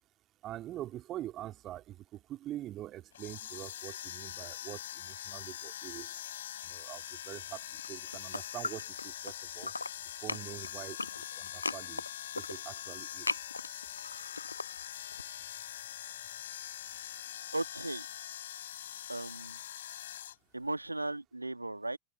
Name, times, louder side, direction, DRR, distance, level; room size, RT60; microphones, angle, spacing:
voice 1, 0.4-6.2 6.6-7.6 7.9-9.7 10.2-11.0 11.3-12.0 12.3-13.4, right 13 dB, 35° right, 3.3 m, -44 dB
sound 1, 3.1-20.4, left 11 dB, 60° left, 4.2 m, -43 dB
sound 2, 7.7-9.3 9.6-15.2, left 2 dB, 80° left, 0.8 m, -39 dB
voice 2, 17.5-18.1 19.1-19.6 20.5-22.0, right 2 dB, 85° right, 1.7 m, -36 dB
figure-of-eight pair, 90°, 0 cm